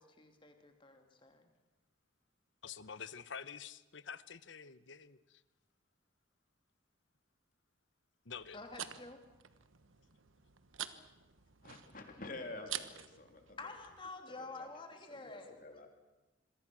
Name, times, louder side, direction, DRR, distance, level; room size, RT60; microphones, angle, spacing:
voice 1, 0.0-1.5 8.5-9.2 13.6-15.9, left 3 dB, 25° left, 2.9 m, -49 dB
voice 2, 2.6-5.4 8.3-8.6, left 6 dB, 70° left, 0.9 m, -48 dB
sound 1, 8.3-14.1, right 10 dB, 85° right, 1.3 m, -48 dB
voice 3, 11.6-13.6 14.4-14.7 15.1-15.9, left 2 dB, 45° left, 3.2 m, -48 dB
27.0 x 22.5 x 6.3 m
head